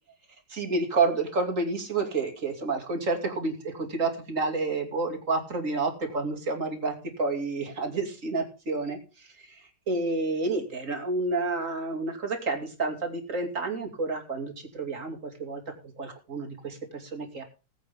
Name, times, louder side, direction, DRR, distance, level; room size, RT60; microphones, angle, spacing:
voice 1, 0.5-9.5 9.9-15.6 16.0-17.4, right 3 dB, 45° right, 4 dB, 3.0 m, -29 dB
20.5 x 8.2 x 3.6 m, 0.32 s
omnidirectional pair, 1.9 m